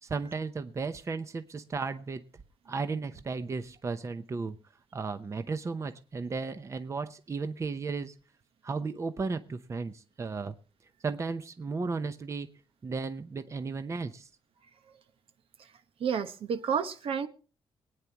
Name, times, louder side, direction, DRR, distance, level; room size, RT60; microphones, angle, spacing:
voice 1, 0.0-2.2 2.7-4.6 4.9-8.1 8.6-10.5 11.0-12.5 12.8-14.3, right 4 dB, 30° right, 0.8 m, -34 dB
voice 2, 16.0-17.3, right 7 dB, 70° right, 1.1 m, -30 dB
24.5 x 9.4 x 3.0 m
cardioid pair, 125°, 10 cm